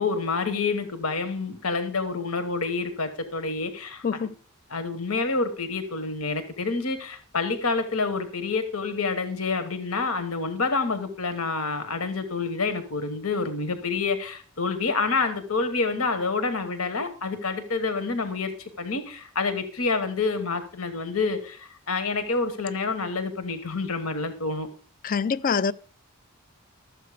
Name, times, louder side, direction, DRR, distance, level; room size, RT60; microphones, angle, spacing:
voice 1, 0.0-4.0 4.7-18.5 18.8-24.7, left 4 dB, 80° left, 1.3 m, -28 dB
voice 2, 4.0-4.3 25.0-25.7, left 6 dB, 40° left, 0.4 m, -25 dB
13.0 x 7.8 x 5.0 m
head